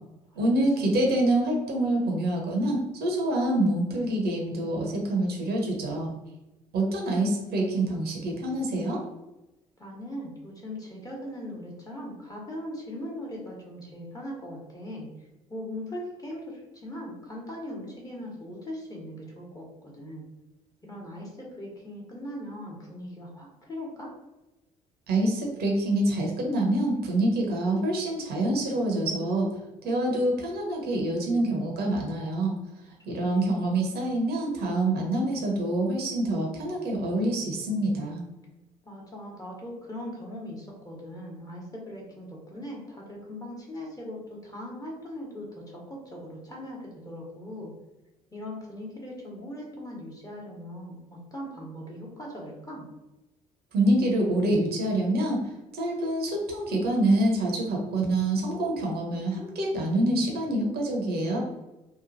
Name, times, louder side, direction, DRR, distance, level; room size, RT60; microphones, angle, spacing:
voice 1, 0.4-6.1 6.7-9.0 25.1-29.5 29.8-32.6 33.1-38.2 53.7-61.4, right 1 dB, 55° right, 0 dB, 0.8 m, -26 dB
voice 2, 9.8-20.2 20.8-24.1 33.1-33.8 38.8-47.7 48.3-52.9, left 1 dB, 20° left, -2 dB, 1.2 m, -40 dB
3.0 x 2.2 x 2.6 m, 0.99 s
figure-of-eight pair, 50°, 20 cm